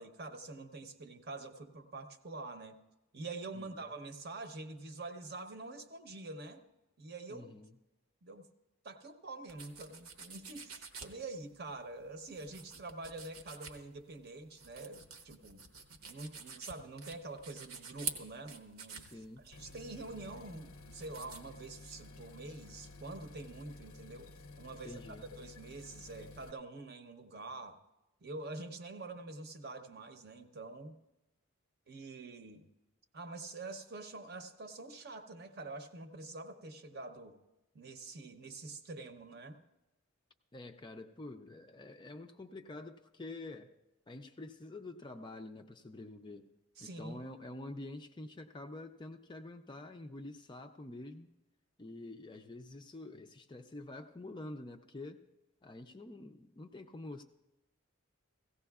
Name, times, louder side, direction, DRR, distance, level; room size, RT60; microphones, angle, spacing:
voice 1, 0.0-2.8 3.1-6.6 7.0-7.5 8.2-8.5 8.8-15.7 16.0-27.8 28.2-31.0 31.9-32.6 33.1-37.4 37.7-39.6 46.8-47.2, right 2 dB, 45° right, 6 dB, 0.8 m, -46 dB
voice 2, 3.5-3.9 7.3-7.7 19.0-19.4 24.8-25.3 40.5-43.7 44.1-46.5 46.8-51.3 51.8-55.2 55.6-57.2, left 2 dB, 20° left, 6 dB, 0.4 m, -47 dB
sound 1, 9.5-21.4, right 5 dB, 85° right, 1.0 m, -48 dB
sound 2, 19.5-26.5, left 2 dB, 75° left, 0.5 m, -53 dB
17.0 x 15.5 x 2.4 m, 0.99 s
head